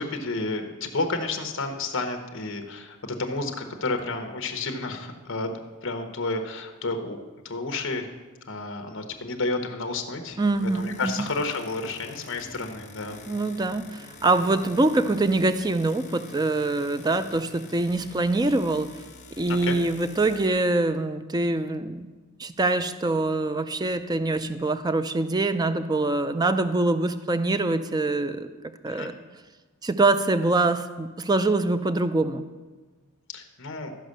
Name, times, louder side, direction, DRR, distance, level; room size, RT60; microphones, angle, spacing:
voice 1, 0.0-5.5 5.8-7.2 7.4-8.1 8.5-13.2 19.5-19.8 28.9-29.1 33.3-33.9, left 3 dB, 60° left, 5 dB, 1.0 m, -31 dB
sound 1, 4.0-4.2 10.3-20.5, left 3 dB, 35° left, 1.3 m, -47 dB
voice 2, 10.4-11.3 13.3-18.9 19.4-22.1 22.4-28.5 28.8-29.1 29.8-32.5, right 2 dB, 20° right, 10 dB, 0.4 m, -24 dB
13.0 x 5.3 x 6.5 m, 1.3 s
head